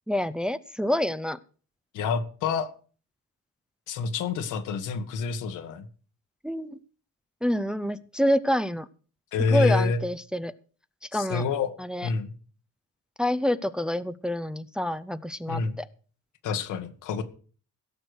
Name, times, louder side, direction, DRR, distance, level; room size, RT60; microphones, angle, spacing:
voice 1, 0.1-1.4 6.4-6.8 7.4-8.9 9.5-10.5 11.1-11.4 11.8-12.1 13.2-15.8, equal, 5° right, 13 dB, 0.6 m, -27 dB
voice 2, 1.9-2.7 3.9-5.9 9.3-10.0 11.1-11.7 12.0-12.3 15.5-15.8 16.4-17.2, left 5 dB, 90° left, 8 dB, 1.6 m, -27 dB
16.5 x 6.6 x 6.3 m, 0.40 s
cardioid pair, 90°, 30 cm